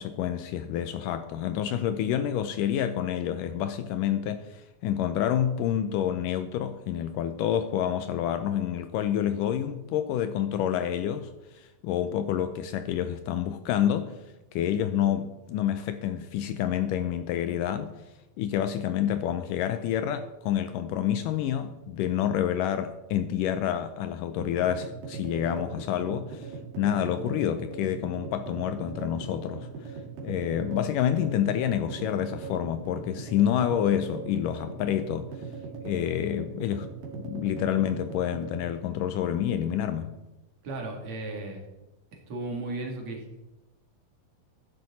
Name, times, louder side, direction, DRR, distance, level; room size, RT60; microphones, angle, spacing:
voice 1, 0.0-14.1 14.5-17.9 18.4-29.9 30.2-35.3 35.8-36.9 37.1-40.1, left 10 dB, 80° left, 2.1 m, -28 dB
sound 1, 24.4-38.7, right 5 dB, 80° right, 3.7 m, -40 dB
voice 2, 40.6-41.7 42.1-43.4, right 2 dB, 55° right, 3.2 m, -35 dB
13.0 x 10.0 x 4.2 m
omnidirectional pair, 4.1 m